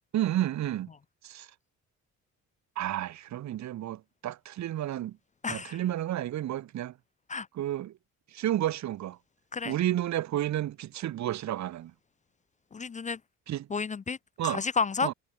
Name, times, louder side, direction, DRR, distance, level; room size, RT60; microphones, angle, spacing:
voice 1, 0.1-0.9 1.2-1.5 2.8-5.2 5.5-6.9 7.5-7.9 8.3-9.2 9.6-11.9 13.5-13.7 14.4-14.6 15.0-15.1, right 13 dB, 65° right, 1.0 m, -31 dB
voice 2, 5.4-5.8 7.3-7.5 9.5-9.7 12.7-13.2 13.7-14.2 14.4-15.1, left 5 dB, 25° left, 0.5 m, -31 dB
cardioid pair, 90°, 30 cm